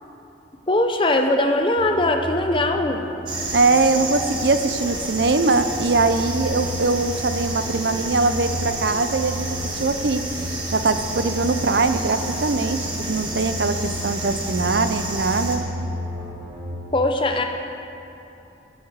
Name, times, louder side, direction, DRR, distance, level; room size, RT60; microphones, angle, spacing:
voice 1, 0.7-3.0 16.9-17.4, left 2 dB, 25° left, 4 dB, 0.8 m, -20 dB
sound 1, 1.8-16.7, equal, ahead, 3.2 m, -33 dB
sound 2, 3.3-15.6, right 2 dB, 25° right, 1.8 m, -31 dB
voice 2, 3.5-10.2 10.7-15.6, right 3 dB, 65° right, 10 dB, 0.7 m, -22 dB
18.0 x 11.5 x 4.8 m, 2.9 s
head